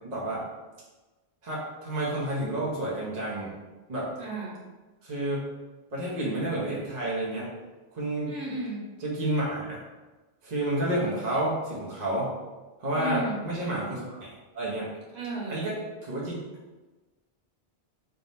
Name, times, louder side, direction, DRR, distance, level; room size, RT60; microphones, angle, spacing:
voice 1, 0.0-0.4 1.4-3.5 3.9-4.1 5.0-5.4 5.9-7.5 7.9-8.4 9.0-9.8 10.4-12.3 12.8-14.9 15.5-16.4, right 1 dB, 45° right, -6 dB, 1.0 m, -30 dB
voice 2, 4.2-4.6 8.3-8.9 12.9-13.4 15.1-15.6, right 2 dB, 90° right, -6 dB, 1.4 m, -34 dB
3.6 x 2.3 x 4.0 m, 1.2 s
omnidirectional pair, 1.0 m